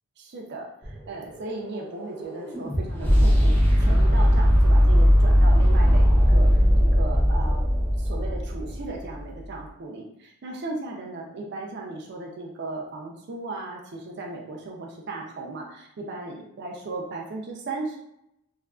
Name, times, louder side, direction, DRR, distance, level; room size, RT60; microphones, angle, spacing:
voice 1, 0.2-6.5 6.8-7.6 8.0-18.0, right 2 dB, 50° right, -1 dB, 0.4 m, -36 dB
sound 1, 0.8-8.9, equal, 10° left, 0.4 m, -19 dB
2.7 x 2.4 x 2.3 m, 0.78 s
head